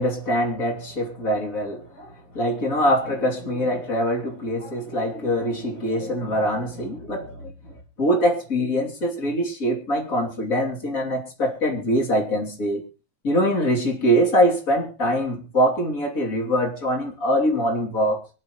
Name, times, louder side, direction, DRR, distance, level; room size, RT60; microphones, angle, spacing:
voice 1, 0.0-7.5 8.0-12.8 13.2-18.2, equal, 25° left, 2.4 m, -23 dB
24.5 x 10.5 x 3.0 m
omnidirectional pair, 5.2 m